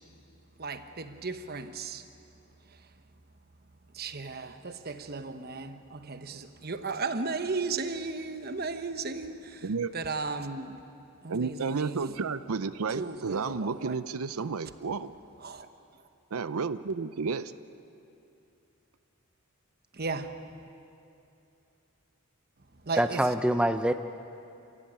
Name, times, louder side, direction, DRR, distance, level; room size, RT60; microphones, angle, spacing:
voice 1, 0.6-2.0 3.9-9.7 9.9-10.8 11.2-12.2 13.0-13.9 15.4-15.7 19.9-20.4 22.9-23.2, right 4 dB, 45° right, 1.1 m, -35 dB
voice 2, 11.3-15.1 16.3-17.5, right 5 dB, 80° right, 0.6 m, -32 dB
voice 3, 23.0-23.9, right 1 dB, 5° right, 0.5 m, -25 dB
28.5 x 16.5 x 8.8 m
head